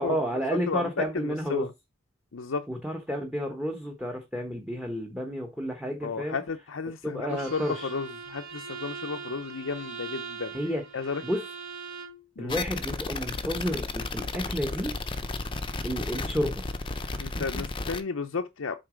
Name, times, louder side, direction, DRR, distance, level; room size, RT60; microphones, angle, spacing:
voice 1, 0.0-1.7 2.7-6.4 7.0-7.9 10.5-10.8 11.2-11.4 12.4-14.9 15.8-17.6, equal, 5° right, 1.0 m, -31 dB
voice 2, 0.7-1.7 2.3-2.7 6.0-10.5 10.9-11.2 12.4-12.5 17.2-18.7, left 5 dB, 70° left, 0.6 m, -33 dB
Bowed string instrument, 7.3-12.2, right 5 dB, 65° right, 3.4 m, -40 dB
sound 1, 12.5-18.0, left 3 dB, 25° left, 0.6 m, -33 dB
8.0 x 4.1 x 5.0 m
head